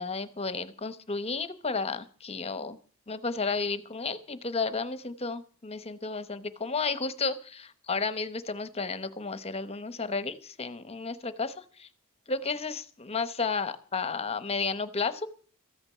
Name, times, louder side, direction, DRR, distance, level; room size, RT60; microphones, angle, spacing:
voice 1, 0.0-2.8 3.1-11.9 12.3-15.3, left 4 dB, 30° left, 13 dB, 0.9 m, -32 dB
14.0 x 8.8 x 7.3 m, 0.44 s
head